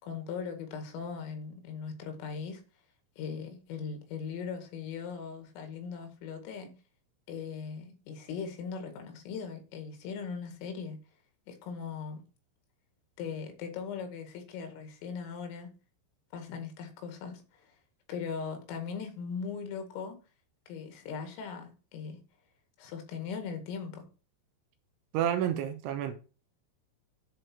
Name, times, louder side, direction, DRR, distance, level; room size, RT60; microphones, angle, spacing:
voice 1, 0.0-2.6 3.2-6.8 7.3-11.0 11.5-12.2 13.2-15.7 16.3-17.7 18.1-20.2 20.7-22.2 22.8-24.1, left 6 dB, 80° left, 4.6 m, -39 dB
voice 2, 25.1-26.1, right 10 dB, 80° right, 3.2 m, -29 dB
10.5 x 4.9 x 6.1 m
omnidirectional pair, 5.8 m